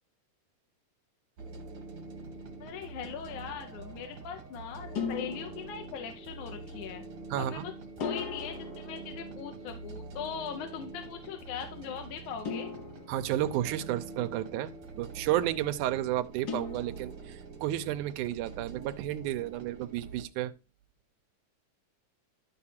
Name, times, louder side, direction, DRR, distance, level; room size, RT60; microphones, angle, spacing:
sound 1, 1.4-20.2, right 3 dB, 50° right, 2.6 m, -45 dB
sound 2, 2.3-2.8 4.9-6.5 8.0-9.9 12.4-14.1 16.5-17.6, left 5 dB, 60° left, 1.0 m, -40 dB
voice 1, 2.6-7.0 7.4-7.7 8.0-12.7, left 8 dB, 80° left, 2.4 m, -40 dB
voice 2, 7.3-7.7 13.1-20.5, right 13 dB, 85° right, 2.2 m, -32 dB
12.0 x 4.8 x 4.4 m
omnidirectional pair, 3.5 m